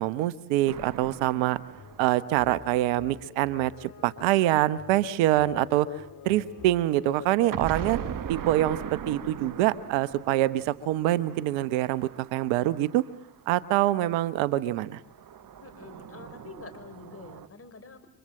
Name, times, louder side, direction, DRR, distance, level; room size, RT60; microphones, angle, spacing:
voice 1, 0.0-1.6 2.0-5.9 6.2-8.0 8.3-13.0 13.5-15.0, right 14 dB, 75° right, 17 dB, 1.1 m, -25 dB
sound 1, 0.7-3.5 7.5-13.8 15.0-17.5, right 9 dB, 45° right, 1.5 m, -40 dB
sound 2, 1.8-8.2, left 8 dB, 45° left, 2.7 m, -48 dB
voice 2, 15.6-18.1, left 4 dB, 30° left, 8 dB, 5.4 m, -46 dB
30.0 x 25.0 x 7.7 m, 0.76 s
hypercardioid pair, 65°, 47 cm